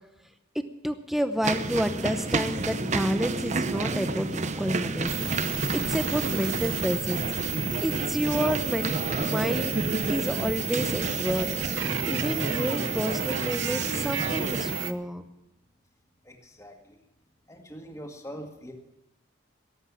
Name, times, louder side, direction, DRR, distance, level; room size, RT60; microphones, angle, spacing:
voice 1, 0.8-5.1 5.7-7.2 7.8-9.8 10.1-15.3, equal, ahead, 9 dB, 0.8 m, -30 dB
sound 1, 1.4-14.8, right 3 dB, 35° right, 0.7 m, -30 dB
sound 2, 5.1-14.9, right 7 dB, 85° right, 0.9 m, -33 dB
voice 2, 16.3-17.0 17.5-18.7, equal, 15° left, 2 dB, 2.0 m, -43 dB
17.5 x 8.1 x 8.4 m, 0.93 s
head